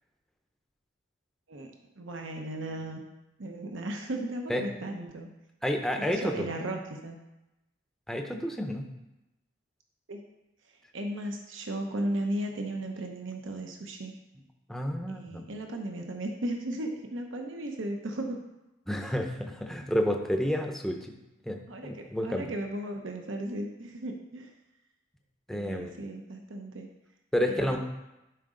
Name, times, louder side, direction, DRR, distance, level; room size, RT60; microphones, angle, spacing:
voice 1, 2.0-3.0 3.4-5.3 6.1-7.2 10.1-10.2 10.9-14.1 15.1-18.4 21.7-21.9 22.2-24.5 25.5-26.9 27.4-27.8, right 1 dB, 80° right, 3 dB, 0.9 m, -35 dB
voice 2, 5.6-6.5 8.1-8.9 14.7-15.4 18.9-21.2 21.4-22.5 25.5-25.9 27.3-27.8, equal, ahead, 3 dB, 0.6 m, -30 dB
11.0 x 5.0 x 3.8 m, 0.95 s
head